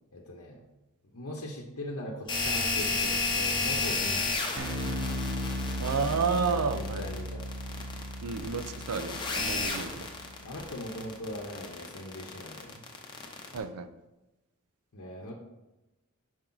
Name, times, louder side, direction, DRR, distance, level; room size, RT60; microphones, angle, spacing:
voice 1, 0.1-0.6 1.1-4.4 6.7-7.5 10.4-12.8 14.9-15.3, left 1 dB, 80° left, -1 dB, 0.8 m, -40 dB
sound 1, 2.3-13.6, left 3 dB, 20° left, 0.6 m, -32 dB
Bass guitar, 4.6-11.0, equal, 50° right, 0.8 m, -37 dB
voice 2, 5.8-7.0 8.2-10.1 13.5-13.9, right 5 dB, 90° right, 10 dB, 0.5 m, -31 dB
5.8 x 4.7 x 3.9 m, 1.0 s
head